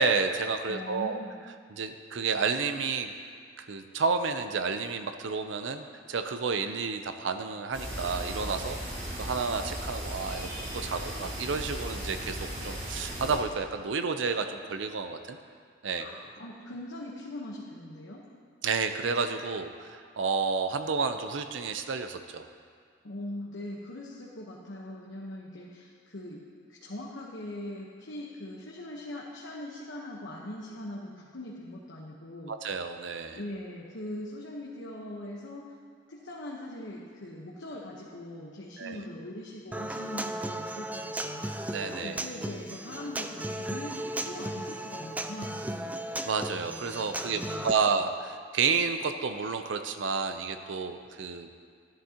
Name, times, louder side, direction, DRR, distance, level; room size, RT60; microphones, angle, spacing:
voice 1, 0.0-1.2 1.7-3.1 3.6-8.8 9.1-15.4 15.8-16.1 18.6-22.5 32.5-33.4 38.8-39.0 41.7-42.2 46.2-51.5, right 5 dB, 80° right, 8 dB, 0.6 m, -30 dB
voice 2, 0.7-1.4 16.0-18.2 23.0-32.5 33.3-35.7 36.1-41.5 42.0-46.0 47.3-47.7, left 1 dB, 75° left, -4 dB, 1.1 m, -41 dB
sound 1, 7.7-13.4, equal, 45° right, 2.6 m, -37 dB
Human voice / Acoustic guitar, 39.7-47.7, right 1 dB, 10° right, 0.3 m, -36 dB
13.0 x 11.0 x 2.9 m, 2.1 s
head